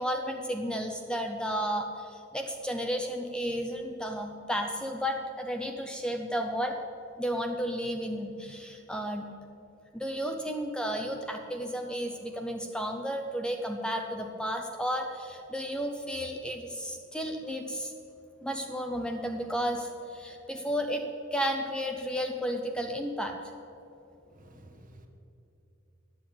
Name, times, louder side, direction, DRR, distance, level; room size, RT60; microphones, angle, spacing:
voice 1, 0.0-6.8 7.2-9.2 9.9-17.9 18.4-21.0 21.3-23.3, equal, 5° left, 4 dB, 0.6 m, -33 dB
voice 2, 24.3-25.1, right 1 dB, 45° right, 4 dB, 1.3 m, -53 dB
10.5 x 7.9 x 8.6 m, 2.7 s
head